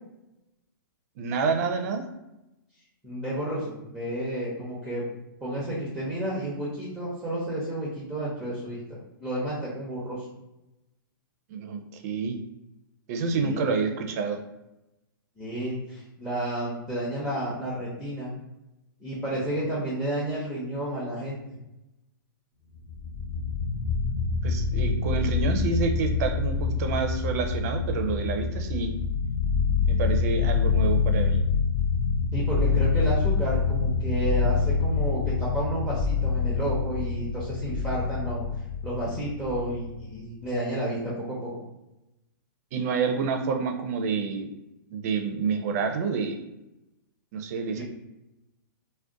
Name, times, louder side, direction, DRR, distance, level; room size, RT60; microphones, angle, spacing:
voice 1, 1.2-2.0 11.5-12.4 13.1-14.4 24.4-28.9 29.9-31.4 42.7-44.5 44.9-46.4 47.3-47.8, right 5 dB, 45° right, 5 dB, 0.4 m, -28 dB
voice 2, 3.0-5.1 5.4-8.8 9.2-10.2 13.3-13.6 15.4-18.3 19.0-21.4 32.3-38.5 38.8-41.5 47.8-47.9, right 1 dB, ahead, -7 dB, 0.6 m, -31 dB
sound 1, 22.8-40.2, left 5 dB, 45° left, 0.8 m, -26 dB
2.4 x 2.1 x 3.7 m, 0.94 s
hypercardioid pair, 140°, 12 cm